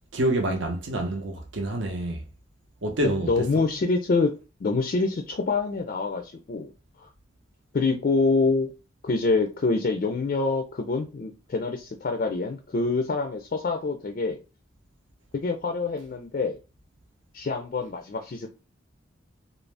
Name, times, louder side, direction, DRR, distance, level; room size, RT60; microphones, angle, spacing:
voice 1, 0.1-2.3 2.8-3.7, right 1 dB, 70° right, 0.7 m, -27 dB
voice 2, 3.3-4.3 4.6-6.7 7.7-8.7 9.0-14.4 15.3-16.6 17.3-18.5, left 3 dB, 45° left, 0.4 m, -26 dB
2.5 x 2.0 x 3.2 m
head